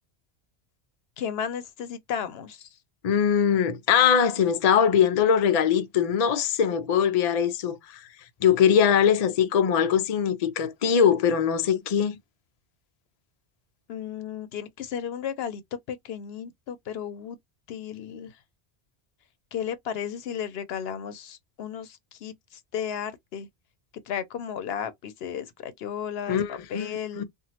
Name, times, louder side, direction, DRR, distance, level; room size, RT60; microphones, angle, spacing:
voice 1, 1.2-2.7 13.9-15.6 15.9-17.4 17.7-18.3 19.5-23.5 24.1-27.2, left 8 dB, 70° left, 0.8 m, -34 dB
voice 2, 3.0-8.0 8.4-12.2 26.3-27.2, left 8 dB, 55° left, 0.4 m, -22 dB
2.9 x 2.4 x 2.8 m
omnidirectional pair, 1.1 m